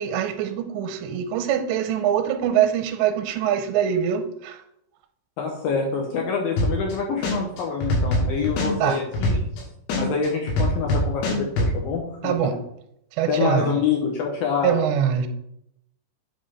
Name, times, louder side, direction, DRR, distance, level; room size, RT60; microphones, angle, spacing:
voice 1, 0.0-4.6 8.8-9.0 12.2-12.6 13.2-13.7 14.6-15.3, right 9 dB, 90° right, 7 dB, 2.9 m, -23 dB
voice 2, 5.4-9.3 10.0-12.4 13.3-14.8, left 5 dB, 70° left, 0 dB, 2.3 m, -26 dB
sound 1, 6.6-6.9 7.2-9.6 9.9-11.7, left 1 dB, 85° left, 4.1 m, -22 dB
8.2 x 3.7 x 5.6 m, 0.76 s
omnidirectional pair, 5.1 m